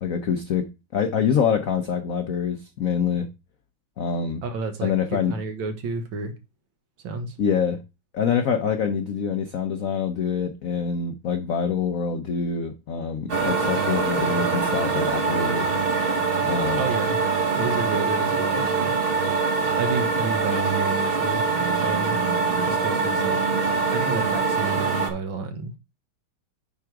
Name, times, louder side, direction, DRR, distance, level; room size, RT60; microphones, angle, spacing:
voice 1, 0.0-3.3 4.0-4.4 4.8-5.4 7.4-7.8 8.1-15.7 16.4-16.8, left 6 dB, 75° left, 0.7 m, -25 dB
voice 2, 4.4-6.3 7.0-7.4 8.8-9.0 16.8-17.2 17.6-19.4 19.8-21.5 21.7-22.2 22.6-23.4 23.7-25.8, right 3 dB, 65° right, 1.9 m, -31 dB
sound 1, 13.3-25.1, right 4 dB, 35° right, 1.1 m, -23 dB
9.5 x 3.8 x 4.6 m
omnidirectional pair, 2.4 m